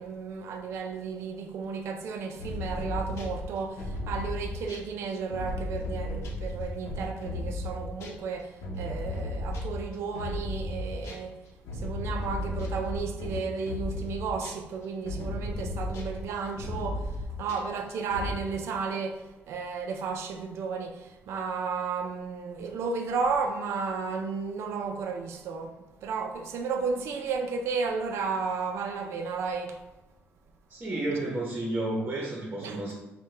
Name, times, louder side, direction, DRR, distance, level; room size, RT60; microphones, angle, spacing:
voice 1, 0.0-11.4 11.7-29.8 32.6-32.9, right 5 dB, 75° right, 0.4 m, -33 dB
sound 1, 2.4-11.3 11.6-18.4, left 2 dB, 80° left, 0.7 m, -35 dB
voice 2, 30.7-32.9, right 2 dB, 30° right, 0.8 m, -31 dB
5.3 x 2.2 x 3.2 m
cardioid pair, 120°, 5 cm